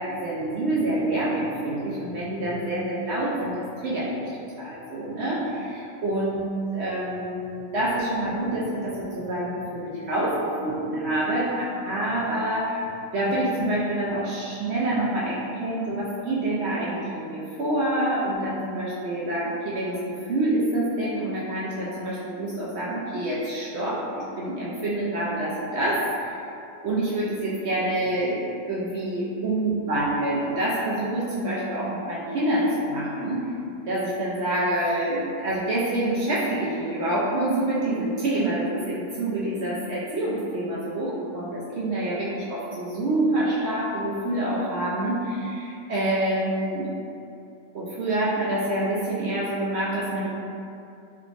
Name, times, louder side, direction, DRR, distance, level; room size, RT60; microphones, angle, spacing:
voice 1, 0.0-4.3 4.6-6.4 6.7-12.8 13.1-26.4 26.8-33.5 33.9-46.9 47.7-50.3, right 1 dB, 65° right, -7 dB, 0.7 m, -27 dB
3.3 x 3.0 x 2.4 m, 2.6 s
omnidirectional pair, 1.5 m